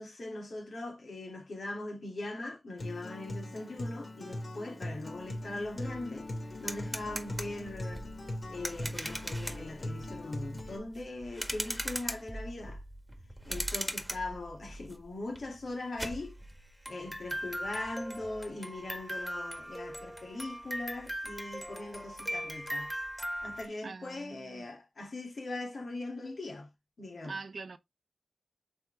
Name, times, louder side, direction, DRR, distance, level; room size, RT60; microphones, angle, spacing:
voice 1, 0.0-6.3 6.6-8.0 8.5-12.8 13.4-16.4 16.9-22.9 23.4-26.7 27.0-27.4, left 2 dB, 80° left, 2.5 m, -40 dB
Acoustic guitar, 2.8-10.8, left 1 dB, 60° left, 2.6 m, -40 dB
sound 1, 5.2-5.3 5.6-23.7, equal, 5° right, 1.7 m, -40 dB
voice 2, 23.8-24.6 27.2-27.8, right 4 dB, 85° right, 0.7 m, -43 dB
6.6 x 4.5 x 3.4 m
wide cardioid pair, 60°, 0 cm